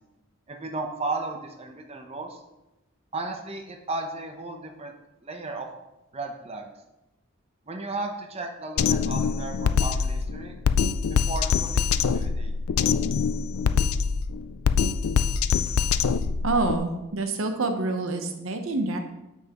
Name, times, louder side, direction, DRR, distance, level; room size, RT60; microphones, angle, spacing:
voice 1, 0.5-2.4 3.1-4.9 5.2-5.7 6.1-6.7 7.7-10.6 11.1-12.5, right 2 dB, 30° right, 3 dB, 0.7 m, -34 dB
Drum kit, 8.8-16.8, left 6 dB, 90° left, 0.4 m, -24 dB
voice 2, 16.4-19.0, right 2 dB, 75° right, 6 dB, 0.9 m, -27 dB
8.9 x 7.3 x 3.0 m, 0.96 s
head